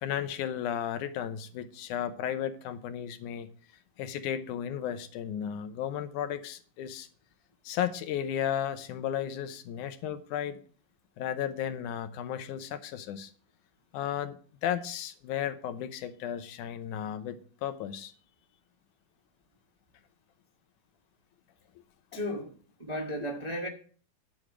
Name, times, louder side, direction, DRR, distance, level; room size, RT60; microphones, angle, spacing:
voice 1, 0.0-3.5 4.0-7.1 7.7-10.6 11.2-13.3 13.9-18.1, left 9 dB, 80° left, 2.3 m, -34 dB
voice 2, 22.1-22.5 22.8-23.7, equal, 55° right, 0.4 m, -34 dB
10.5 x 6.5 x 6.1 m
omnidirectional pair, 3.6 m